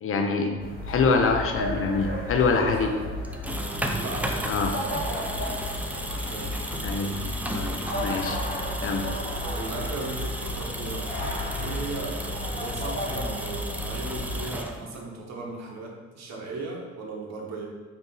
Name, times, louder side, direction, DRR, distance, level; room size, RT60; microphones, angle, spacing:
voice 1, 0.0-2.9 4.5-4.8 6.8-8.4 8.8-9.1, left 4 dB, 45° left, 3 dB, 0.5 m, -25 dB
sound 1, 0.6-14.5, left 1 dB, 25° left, 1.2 m, -33 dB
voice 2, 2.4-3.2 3.9-5.4 6.1-6.6 9.1-9.2 9.5-11.2 11.6-17.7, right 3 dB, 60° right, -1 dB, 0.9 m, -37 dB
sound 2, 3.2-15.2, right 1 dB, 5° right, 0.3 m, -35 dB
5.0 x 2.7 x 2.3 m, 1.3 s
supercardioid pair, 55°, 31 cm